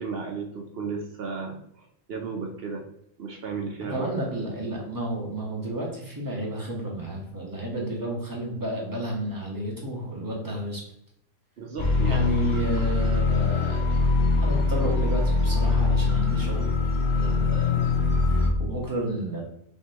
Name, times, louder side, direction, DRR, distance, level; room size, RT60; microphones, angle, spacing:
voice 1, 0.0-2.9 3.2-4.1 11.6-12.3, right 5 dB, 55° right, 2 dB, 0.7 m, -34 dB
voice 2, 3.8-10.8 12.0-13.8 14.4-16.7 17.1-19.4, right 1 dB, 15° right, -3 dB, 1.2 m, -31 dB
sound 1, 11.8-18.5, left 3 dB, 40° left, 0.4 m, -23 dB
5.5 x 3.2 x 2.9 m, 0.74 s
omnidirectional pair, 1.5 m